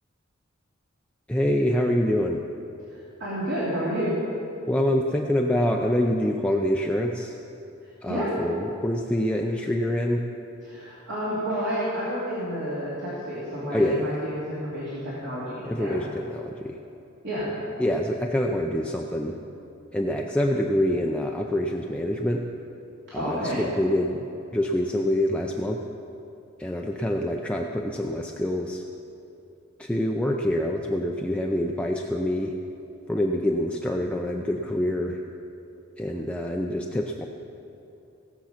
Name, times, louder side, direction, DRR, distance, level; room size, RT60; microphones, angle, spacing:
voice 1, 1.3-2.4 4.7-7.3 8.0-10.2 13.7-14.2 15.6-16.8 17.8-19.4 19.9-22.4 23.1-25.8 26.6-28.8 29.8-32.5 33.1-35.2 36.0-37.3, left 1 dB, 5° left, 0 dB, 0.5 m, -26 dB
voice 2, 3.2-4.2 8.1-8.3 10.6-16.0 17.2-17.6 23.1-23.6, equal, 60° right, -9 dB, 2.9 m, -30 dB
17.5 x 7.1 x 5.8 m, 2.8 s
head